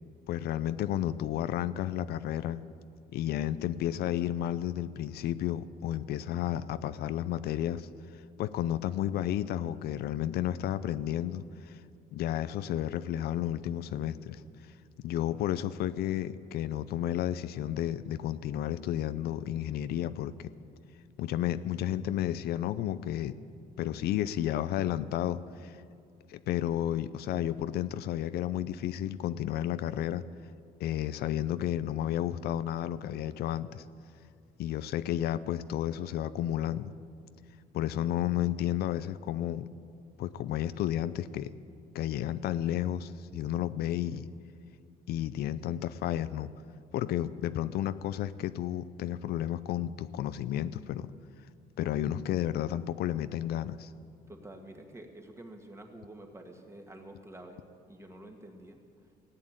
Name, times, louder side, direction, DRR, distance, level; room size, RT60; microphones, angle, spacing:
voice 1, 0.3-2.6 3.1-11.8 12.1-14.7 15.0-20.3 21.2-23.4 23.8-25.8 26.3-30.2 30.8-33.8 34.6-36.9 37.7-39.7 40.2-41.5 41.9-44.3 45.1-46.5 46.9-51.1 51.8-53.9, left 11 dB, 70° left, 14 dB, 0.5 m, -32 dB
voice 2, 54.3-57.6 57.9-58.8, right 1 dB, 15° right, 4 dB, 1.9 m, -48 dB
15.5 x 8.7 x 8.9 m, 2.3 s
cardioid pair, 110°, 17 cm